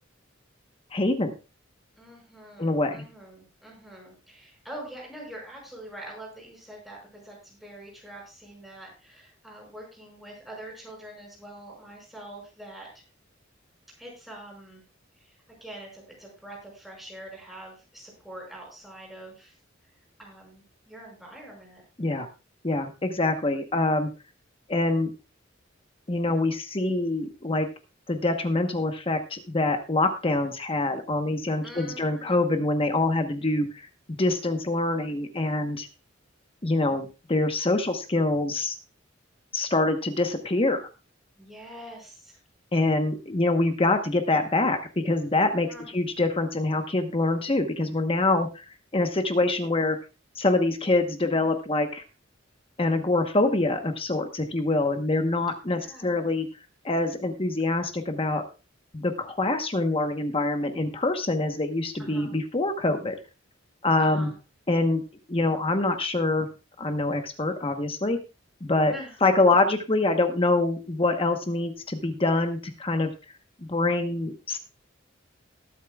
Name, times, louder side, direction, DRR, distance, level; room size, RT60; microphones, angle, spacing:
voice 1, 0.9-1.3 2.6-3.0 22.0-22.3 22.6-24.1 24.7-25.1 26.1-27.7 28.1-35.9 36.6-38.7 39.5-40.9 42.7-48.6 48.9-50.0 50.4-52.0 52.8-56.5 56.8-58.4 58.9-63.2 63.8-64.3 64.7-65.0 65.3-66.5 66.8-68.2 68.6-68.9 69.2-73.1 73.7-74.6, left 2 dB, 30° left, 6 dB, 1.1 m, -25 dB
voice 2, 2.0-12.9 14.0-14.8 15.2-15.3 15.6-19.5 20.2-21.8 31.6-32.4 41.4-42.3 45.7-45.9 55.7-56.2 62.0-62.3 64.0-64.3 68.9-69.2, right 1 dB, ahead, -3 dB, 5.8 m, -44 dB
20.0 x 8.3 x 2.4 m, 0.31 s
head